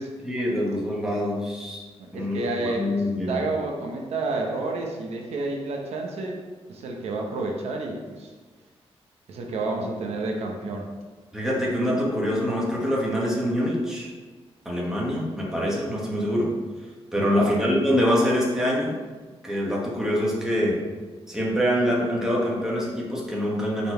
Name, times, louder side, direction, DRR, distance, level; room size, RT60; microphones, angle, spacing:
voice 1, 0.2-1.8 2.1-3.4 11.3-14.1 14.6-16.5 17.1-19.0 19.4-20.8 21.3-23.9, equal, 5° right, -4 dB, 1.3 m, -25 dB
voice 2, 2.0-6.4 6.7-8.3 9.3-10.9 17.2-17.5, right 2 dB, 90° right, 1 dB, 0.9 m, -30 dB
5.4 x 4.1 x 4.4 m, 1.3 s
wide cardioid pair, 145°, 11 cm